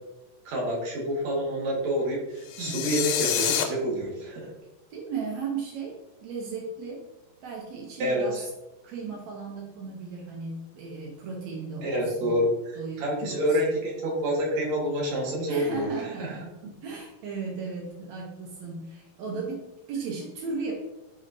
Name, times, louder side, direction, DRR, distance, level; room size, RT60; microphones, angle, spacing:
voice 1, 0.5-4.5 8.0-8.4 11.8-16.3, equal, 55° right, -3 dB, 2.4 m, -28 dB
sound 1, 2.5-3.6, left 9 dB, 85° left, 2.6 m, -27 dB
voice 2, 2.6-2.9 4.9-7.1 7.4-8.5 8.8-12.4 12.8-13.8 15.5-16.5 16.8-20.7, right 4 dB, 90° right, -1 dB, 1.5 m, -36 dB
10.5 x 4.2 x 2.7 m, 0.97 s
omnidirectional pair, 4.5 m